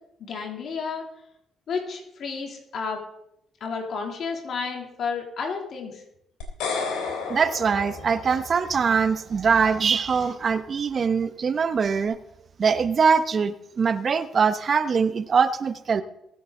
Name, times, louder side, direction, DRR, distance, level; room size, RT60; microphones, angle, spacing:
voice 1, 0.2-1.0 1.7-3.0 3.6-6.0, left 5 dB, 60° left, 1 dB, 2.9 m, -31 dB
sound 1, 6.4-8.7, left 4 dB, 75° left, 3.4 m, -32 dB
voice 2, 7.3-12.2 12.6-16.0, right 6 dB, 50° right, 12 dB, 0.9 m, -22 dB
22.0 x 8.1 x 3.9 m, 0.79 s
hypercardioid pair, 50°, 0 cm